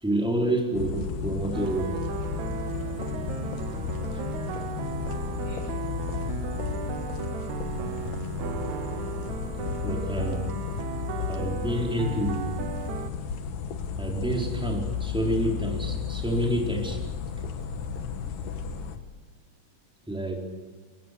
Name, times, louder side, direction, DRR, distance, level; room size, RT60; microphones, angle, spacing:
voice 1, 0.0-2.0 9.8-10.5 11.3-12.5 14.0-17.0 20.0-20.4, right 1 dB, ahead, -1 dB, 4.1 m, -28 dB
sound 1, 0.7-19.0, left 7 dB, 80° left, 3.1 m, -33 dB
sound 2, 1.5-13.1, right 9 dB, 70° right, 2.3 m, -36 dB
voice 2, 2.8-3.3 4.2-4.7 5.2-5.7 6.2-6.3, left 2 dB, 60° left, 0 dB, 9.2 m, -53 dB
27.5 x 22.0 x 6.9 m, 1.4 s
omnidirectional pair, 3.8 m